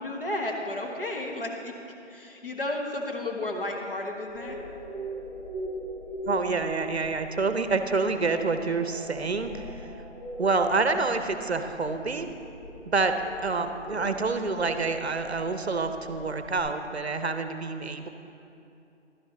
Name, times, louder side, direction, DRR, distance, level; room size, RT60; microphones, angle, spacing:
voice 1, 0.0-1.7 2.1-4.6, left 1 dB, 45° left, 0 dB, 1.3 m, -32 dB
sound 1, 4.3-16.6, equal, 10° right, 2.7 m, -41 dB
voice 2, 6.3-9.9 10.4-12.3 12.9-13.1 13.4-18.1, right 4 dB, 60° right, 8 dB, 0.7 m, -27 dB
11.5 x 10.0 x 3.8 m, 2.7 s
figure-of-eight pair, 165°, 37 cm